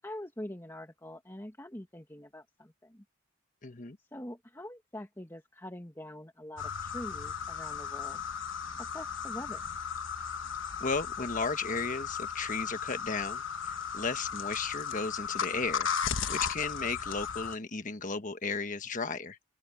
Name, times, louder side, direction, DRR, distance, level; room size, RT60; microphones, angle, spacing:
voice 1, 0.0-3.0 4.1-8.2 8.8-9.7, left 1 dB, 15° left, 1.9 m, -44 dB
voice 2, 3.6-4.0 10.8-15.9 16.3-19.4, left 4 dB, 40° left, 1.4 m, -34 dB
sound 1, 6.6-17.6, left 7 dB, 80° left, 1.2 m, -36 dB
open air
head